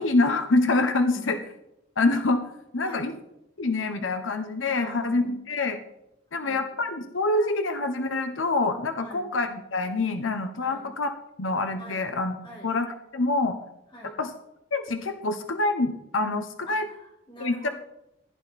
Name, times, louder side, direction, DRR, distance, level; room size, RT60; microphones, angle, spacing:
voice 1, 0.0-1.4 2.0-2.4 2.7-3.1 3.6-5.8 6.3-11.1 11.4-12.4 12.6-12.9 13.1-13.6 14.2-14.3 14.7-16.9 17.4-17.7, left 2 dB, 85° left, 7 dB, 0.9 m, -26 dB
voice 2, 4.7-5.4 6.3-6.7 9.0-9.2 10.6-10.9 11.8-12.0 12.4-12.7 13.9-14.2 16.7-17.7, equal, 25° left, -3 dB, 5.2 m, -45 dB
15.5 x 10.5 x 4.2 m, 0.87 s
head